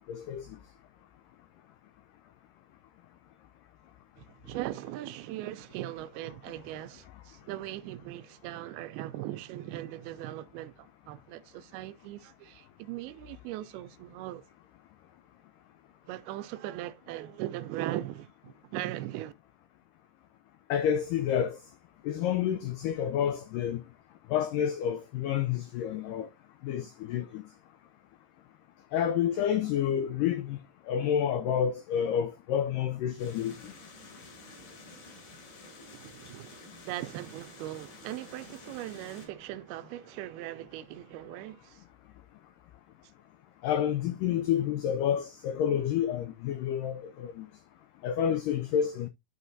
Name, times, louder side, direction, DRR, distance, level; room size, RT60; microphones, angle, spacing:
voice 1, 0.1-0.5 20.7-21.6 22.1-23.8 24.3-26.3 26.6-27.4 28.9-30.6 30.9-33.7 43.6-47.5 48.0-49.1, left 9 dB, 90° left, 1.9 m, -29 dB
voice 2, 4.2-14.4 16.1-19.3 35.9-36.6 36.9-41.8, right 14 dB, 85° right, 2.4 m, -39 dB
sound 1, 33.2-39.3, left 2 dB, 55° left, 3.9 m, -50 dB
12.0 x 4.3 x 2.6 m
omnidirectional pair, 4.6 m